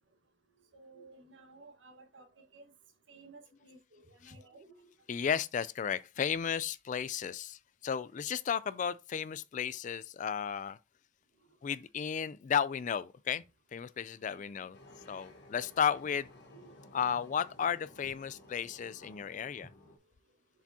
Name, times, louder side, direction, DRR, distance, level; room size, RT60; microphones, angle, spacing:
voice 1, 0.7-2.3 2.5-2.6 3.1-4.8 14.3-14.4 16.5-16.7 18.0-18.1, right 3 dB, 65° right, 1.6 m, -55 dB
voice 2, 5.1-10.8 11.6-13.4 13.7-14.8 15.1-16.3 16.9-19.7, left 7 dB, 40° left, 0.3 m, -34 dB
sound 1, 14.7-20.0, left 1 dB, 60° left, 1.4 m, -56 dB
7.0 x 4.9 x 2.8 m
head